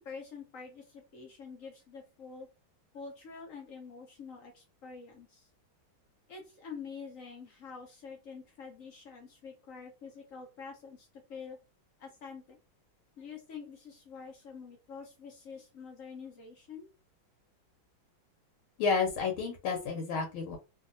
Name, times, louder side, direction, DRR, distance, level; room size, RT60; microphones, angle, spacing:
voice 1, 0.0-2.5 2.9-5.5 6.3-11.6 12.0-12.6 13.2-16.9, left 5 dB, 65° left, 1 dB, 0.8 m, -47 dB
voice 2, 18.8-20.6, left 5 dB, 90° left, 2 dB, 1.5 m, -30 dB
3.1 x 2.7 x 2.5 m, 0.30 s
omnidirectional pair, 2.2 m